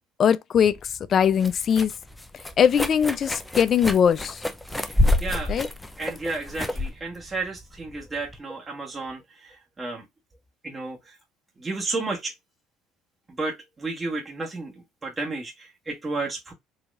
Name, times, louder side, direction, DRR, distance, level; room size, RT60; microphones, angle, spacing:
voice 1, 0.2-0.8 1.1-1.9 2.6-4.4 5.5-5.7, left 8 dB, 45° left, 0.5 m, -20 dB
sound 1, 0.6-8.4, left 1 dB, 5° left, 0.7 m, -28 dB
voice 2, 5.2-5.6 6.0-10.0 10.6-11.2 11.6-12.3 13.4-16.5, right 3 dB, 25° right, 1.4 m, -32 dB
4.1 x 2.8 x 2.5 m
hypercardioid pair, 70°, 0 cm